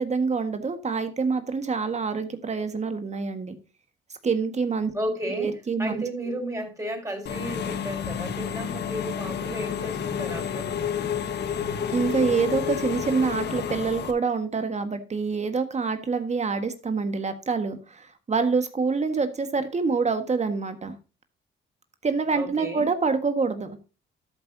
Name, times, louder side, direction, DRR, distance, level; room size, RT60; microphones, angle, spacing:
voice 1, 0.0-3.5 4.2-4.9 5.3-6.4 11.9-21.0 22.0-23.8, right 4 dB, 35° right, 8 dB, 1.6 m, -26 dB
voice 2, 4.9-5.5 5.8-11.1 22.3-22.9, right 1 dB, 15° right, 2 dB, 5.4 m, -33 dB
Engine / Mechanisms, 7.3-14.1, left 8 dB, 60° left, 1.4 m, -30 dB
13.0 x 7.8 x 2.8 m, 0.31 s
cardioid pair, 90°, 20 cm